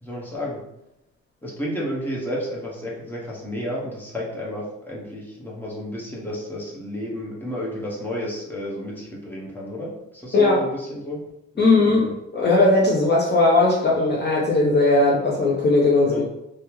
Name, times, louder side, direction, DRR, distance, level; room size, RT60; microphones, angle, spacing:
voice 1, 0.0-0.6 1.4-11.2 11.5-12.1 16.0-16.2, equal, 5° left, -5 dB, 1.0 m, -31 dB
voice 2, 11.6-12.1 12.3-16.2, left 2 dB, 35° left, -4 dB, 0.6 m, -18 dB
3.4 x 2.1 x 3.0 m, 0.87 s
cardioid pair, 90°, 30 cm